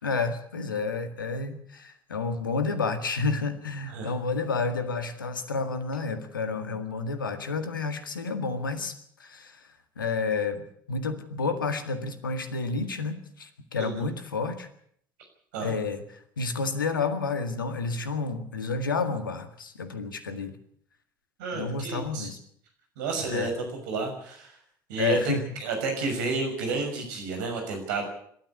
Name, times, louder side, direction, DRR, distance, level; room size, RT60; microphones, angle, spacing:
voice 1, 0.0-9.7 10.0-14.7 15.6-16.0 16.4-20.6 21.5-22.4 23.3-23.5 25.0-25.5, left 4 dB, 80° left, 9 dB, 1.9 m, -30 dB
voice 2, 21.4-22.3 23.0-24.6 24.9-28.0, right 3 dB, 65° right, 4 dB, 6.3 m, -31 dB
25.5 x 13.0 x 8.2 m, 0.66 s
figure-of-eight pair, 55°, 11 cm